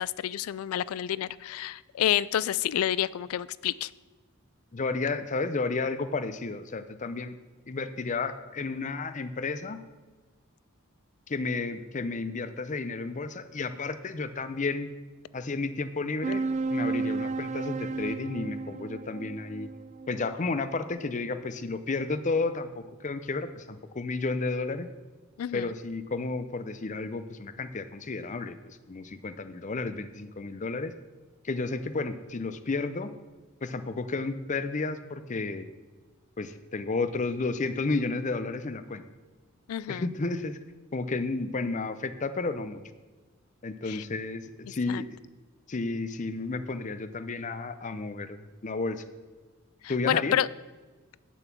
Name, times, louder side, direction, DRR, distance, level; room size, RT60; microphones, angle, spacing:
voice 1, 0.0-3.9 25.4-25.7 39.7-40.0 43.9-44.0 44.9-45.0 50.1-50.5, left 11 dB, 85° left, 20 dB, 0.3 m, -29 dB
voice 2, 4.7-7.4 7.7-9.8 11.3-14.9 15.3-19.7 20.1-24.9 25.5-30.9 31.4-33.1 33.6-35.7 36.4-39.0 39.9-40.6 40.9-42.8 43.6-45.2 45.7-49.0 49.9-50.4, left 3 dB, 35° left, 12 dB, 0.6 m, -32 dB
sound 1, 16.2-21.1, right 3 dB, 35° right, 0.3 m, -33 dB
9.0 x 7.0 x 6.0 m, 1.3 s
head